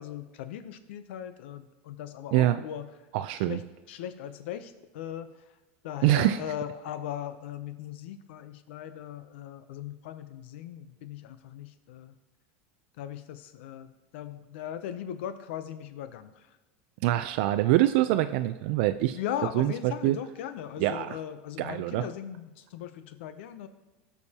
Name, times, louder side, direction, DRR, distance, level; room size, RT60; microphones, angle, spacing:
voice 1, 0.0-2.9 3.4-5.3 5.8-12.1 13.0-16.6 19.1-23.7, left 10 dB, 75° left, 11 dB, 0.7 m, -38 dB
voice 2, 2.3-2.6 3.1-3.6 6.0-6.4 17.0-19.2 19.5-20.2 20.8-21.2 21.6-22.1, right 15 dB, 60° right, 10 dB, 0.4 m, -25 dB
17.0 x 6.9 x 2.9 m, 1.2 s
supercardioid pair, 145°, 6 cm